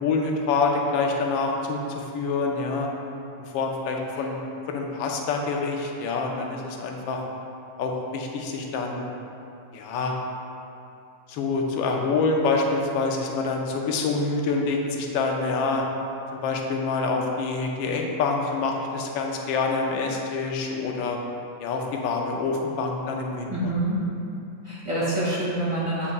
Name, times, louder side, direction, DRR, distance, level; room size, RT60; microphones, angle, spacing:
voice 1, 0.0-2.9 3.5-4.4 4.7-7.2 7.8-9.1 9.7-10.1 11.3-15.8 16.3-21.2 21.6-23.6, left 4 dB, 90° left, 1 dB, 1.4 m, -26 dB
voice 2, 23.5-24.0 24.6-26.1, right 1 dB, 35° right, -8 dB, 0.5 m, -26 dB
8.1 x 5.3 x 2.4 m, 2.6 s
omnidirectional pair, 2.1 m